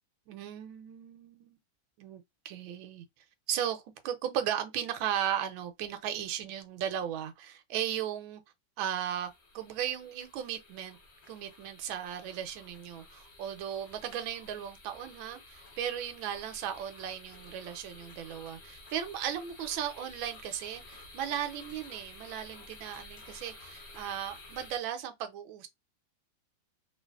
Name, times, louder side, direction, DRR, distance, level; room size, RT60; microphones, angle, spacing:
voice 1, 0.3-1.6 2.0-3.0 3.5-8.4 8.8-11.0 11.3-25.7, right 10 dB, 85° right, 1.4 m, -36 dB
sound 1, 9.0-24.8, left 2 dB, 55° left, 0.7 m, -52 dB
3.1 x 2.8 x 2.3 m
omnidirectional pair, 2.1 m